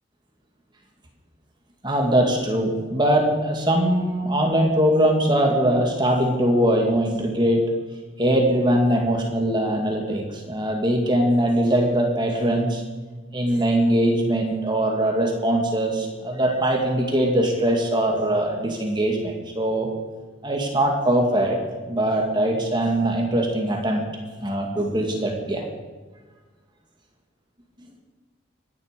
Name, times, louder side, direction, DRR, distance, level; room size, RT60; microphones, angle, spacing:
voice 1, 1.8-7.7 8.2-12.8 13.3-19.9 20.4-21.6 21.9-24.0 24.4-25.7, right 1 dB, 25° right, 1 dB, 2.3 m, -21 dB
25.0 x 10.5 x 5.3 m, 1.3 s
head